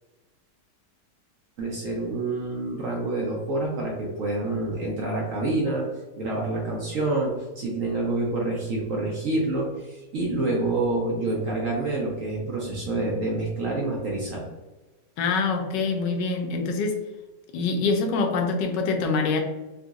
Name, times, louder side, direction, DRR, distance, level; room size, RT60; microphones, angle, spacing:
voice 1, 1.6-5.8 6.2-14.4, right 2 dB, 65° right, -3 dB, 0.8 m, -27 dB
voice 2, 15.2-17.0 17.5-19.4, left 4 dB, 80° left, 4 dB, 1.2 m, -25 dB
3.8 x 2.6 x 2.3 m, 1.1 s
omnidirectional pair, 1.9 m